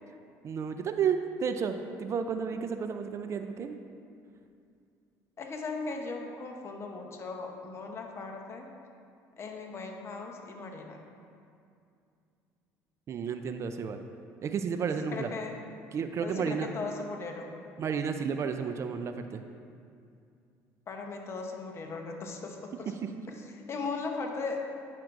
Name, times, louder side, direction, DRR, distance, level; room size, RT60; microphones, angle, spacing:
voice 1, 0.4-3.8 13.1-14.0 14.4-15.3 15.9-16.7 17.8-19.4, right 6 dB, 45° right, 7 dB, 0.4 m, -32 dB
voice 2, 5.4-8.7 9.4-11.1 14.8-15.6 16.2-17.7 20.9-22.9 23.5-24.7, left 4 dB, 40° left, 2 dB, 0.8 m, -38 dB
8.9 x 5.9 x 2.5 m, 2.4 s
supercardioid pair, 95°, 7 cm